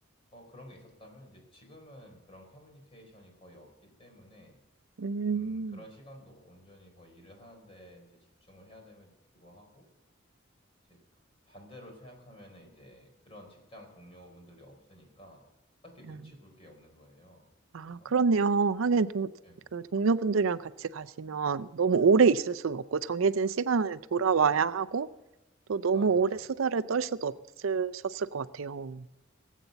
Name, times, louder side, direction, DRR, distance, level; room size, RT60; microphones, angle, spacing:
voice 1, 0.3-4.6 5.3-8.1 8.5-9.9 10.9-11.0 11.5-15.4 15.8-17.5 17.8-18.1 19.4-19.7 25.9-26.4, equal, 30° left, 2 dB, 4.6 m, -53 dB
voice 2, 5.0-5.8 17.7-19.3 19.7-25.1 25.7-26.3 26.6-27.3 27.6-29.0, right 5 dB, 75° right, 13 dB, 0.5 m, -27 dB
19.0 x 8.3 x 8.1 m, 1.0 s
head